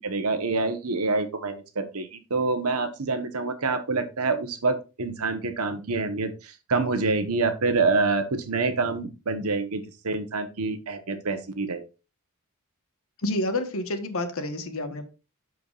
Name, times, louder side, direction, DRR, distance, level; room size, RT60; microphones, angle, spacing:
voice 1, 0.0-11.9, right 3 dB, 70° right, 8 dB, 1.1 m, -27 dB
voice 2, 13.2-15.0, left 1 dB, 65° left, 7 dB, 1.2 m, -29 dB
12.0 x 4.6 x 2.4 m, 0.30 s
head